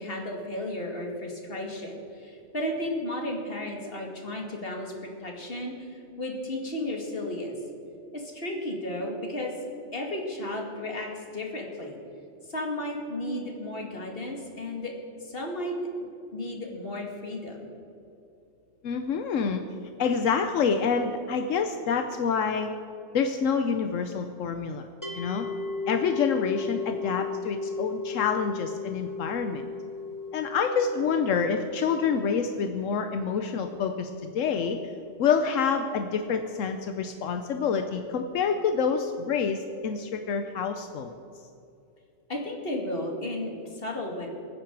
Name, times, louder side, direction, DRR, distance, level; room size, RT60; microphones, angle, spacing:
voice 1, 0.0-7.5 8.1-9.5 9.9-12.0 12.5-14.9 15.2-15.8 16.3-17.7 42.3-44.3, left 1 dB, 45° left, 0 dB, 2.4 m, -34 dB
voice 2, 18.8-19.6 20.0-22.7 23.1-24.9 25.1-25.5 25.9-29.6 30.3-34.8 35.2-41.1, left 6 dB, 85° left, 6 dB, 1.1 m, -27 dB
sound 1, 25.0-36.2, left 4 dB, 15° left, 1.4 m, -37 dB
23.0 x 9.8 x 4.7 m, 2.7 s
omnidirectional pair, 1.3 m